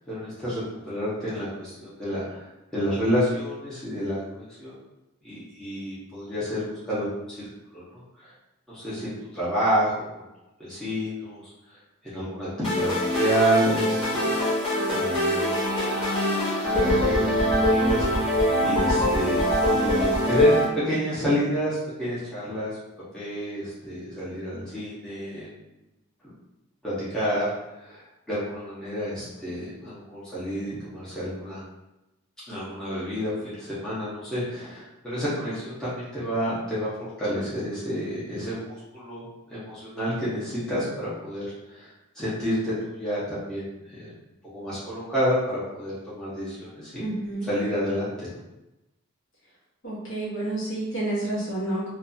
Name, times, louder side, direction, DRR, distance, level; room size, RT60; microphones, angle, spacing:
voice 1, 0.1-2.4 2.7-4.7 5.2-7.5 7.7-8.3 8.7-10.0 10.6-11.4 12.0-14.6 14.9-15.5 15.9-16.0 16.8-22.8 23.1-25.5 26.8-27.5 27.8-28.0 28.3-31.6 32.5-36.9 37.2-41.9 42.1-44.1 44.4-47.0 47.4-48.4, equal, 5° left, -11 dB, 0.8 m, -29 dB
sound 1, 12.6-20.6, left 1 dB, 25° left, 1.1 m, -23 dB
voice 2, 47.0-47.5 49.8-51.9, right 1 dB, 55° left, -7 dB, 1.0 m, -29 dB
2.6 x 2.3 x 2.6 m, 0.96 s
head